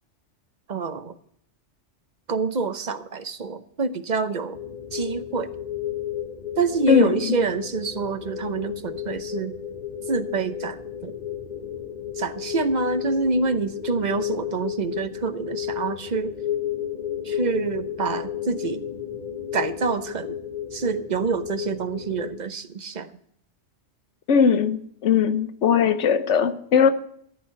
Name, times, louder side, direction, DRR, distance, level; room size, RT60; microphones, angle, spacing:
voice 1, 0.7-1.1 2.3-4.6 4.9-5.5 6.6-9.5 10.1-11.1 12.2-16.3 17.2-18.8 19.5-20.4 20.7-23.1, right 4 dB, 40° right, 0.9 m, -27 dB
sound 1, 4.5-22.4, left 10 dB, 40° left, 1.2 m, -33 dB
voice 2, 6.9-7.4 24.3-26.9, left 7 dB, 80° left, 1.2 m, -19 dB
14.0 x 9.0 x 5.8 m
omnidirectional pair, 1.2 m